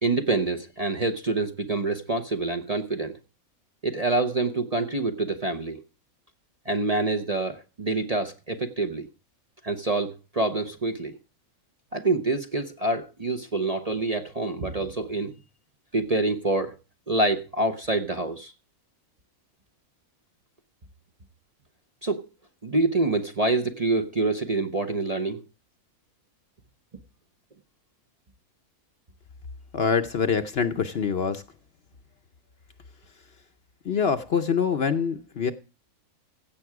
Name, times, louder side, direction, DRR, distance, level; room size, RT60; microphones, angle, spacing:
voice 1, 0.0-3.2 3.8-5.8 6.7-9.1 9.6-11.2 11.9-15.3 15.9-16.7 17.1-18.5 22.0-22.2 22.6-25.4, right 2 dB, 30° right, 0.8 m, -26 dB
voice 2, 29.7-31.4 33.8-35.5, left 6 dB, 50° left, 0.9 m, -25 dB
16.0 x 7.2 x 4.8 m
omnidirectional pair, 1.5 m